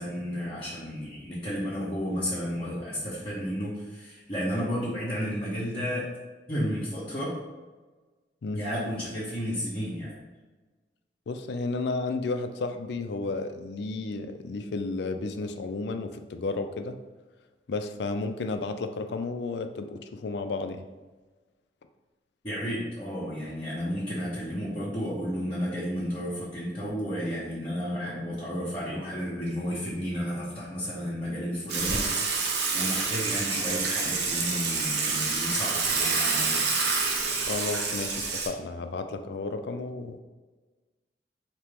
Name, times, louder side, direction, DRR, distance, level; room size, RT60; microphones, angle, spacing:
voice 1, 0.0-6.1 6.5-7.4 8.5-10.2 22.4-32.1 32.7-36.7, equal, 30° left, -9 dB, 0.9 m, -32 dB
voice 2, 11.3-17.0 17.7-20.9 37.5-40.2, left 3 dB, 70° left, 7 dB, 0.4 m, -32 dB
Water / Water tap faucet / Sink (filling or washing), 31.7-38.5, right 4 dB, 70° right, 0.7 m, -27 dB
4.4 x 2.9 x 3.5 m, 1.3 s
head